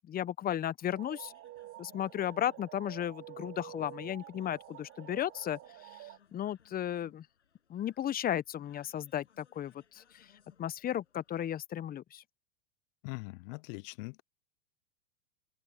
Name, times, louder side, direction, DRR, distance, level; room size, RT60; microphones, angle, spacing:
voice 1, 0.1-1.3 1.8-5.6 6.3-7.2 7.7-10.3 10.6-12.2, left 11 dB, 25° left, 1.1 m, -35 dB
sound 1, 0.9-6.2, right 17 dB, 45° right, 7.8 m, -49 dB
sound 2, 1.1-11.4, left 7 dB, 85° left, 7.5 m, -67 dB
voice 2, 13.0-14.2, left 28 dB, 50° left, 1.0 m, -42 dB
open air
hypercardioid pair, 100°, 34 cm